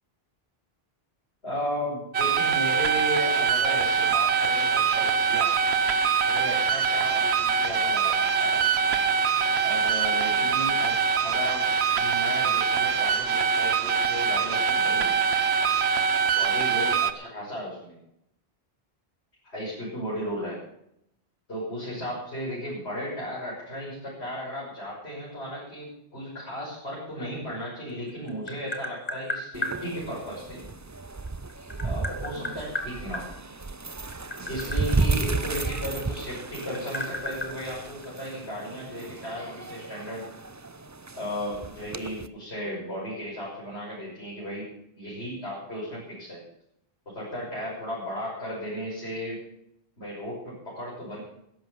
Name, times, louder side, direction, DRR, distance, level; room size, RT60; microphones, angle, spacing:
voice 1, 1.4-5.6 6.3-8.6 9.6-10.9 11.2-15.1 16.3-18.0 19.4-20.6 21.5-30.6 31.8-33.3 34.5-40.2 41.1-44.7 44.9-46.4 47.0-49.4 50.0-51.2, equal, 80° left, -8 dB, 6.8 m, -35 dB
sound 1, 2.1-17.1, right 6 dB, 80° right, 1.2 m, -24 dB
Tap, 27.9-29.8 31.1-33.2 34.0-36.2 36.5-38.5, left 1 dB, 40° left, 2.1 m, -34 dB
sound 2, 29.5-42.3, right 3 dB, 25° right, 0.5 m, -33 dB
14.0 x 11.0 x 7.1 m, 0.77 s
omnidirectional pair, 1.1 m